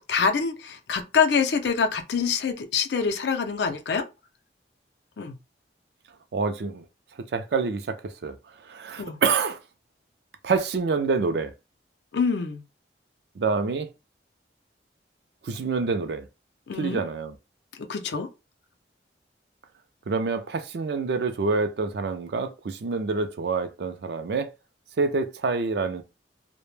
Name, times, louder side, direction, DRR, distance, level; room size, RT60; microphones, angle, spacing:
voice 1, 0.1-4.0 5.2-5.4 9.0-9.2 12.1-12.6 16.7-17.0 17.8-18.3, left 6 dB, 70° left, 0.4 m, -25 dB
voice 2, 6.3-6.8 7.3-8.3 8.7-9.6 10.4-11.5 13.4-13.9 15.4-16.3 16.8-17.3 20.1-24.5 25.0-26.0, right 4 dB, 60° right, 0.4 m, -27 dB
2.1 x 2.0 x 3.1 m
head